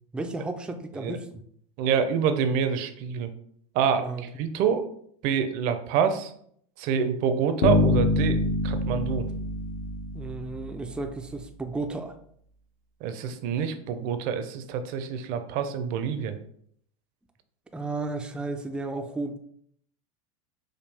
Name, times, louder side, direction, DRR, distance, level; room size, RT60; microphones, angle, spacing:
voice 1, 0.1-1.4 4.0-4.2 10.1-12.2 17.7-19.4, right 3 dB, 5° right, 6 dB, 0.3 m, -33 dB
voice 2, 1.8-3.3 3.7-4.1 4.4-4.8 5.2-6.3 6.8-8.4 8.6-9.3 13.0-16.4, right 7 dB, 55° right, 9 dB, 0.6 m, -26 dB
Bass guitar, 7.6-10.7, left 2 dB, 70° left, 0.9 m, -25 dB
5.0 x 2.3 x 3.4 m, 0.66 s
supercardioid pair, 110°, 17 cm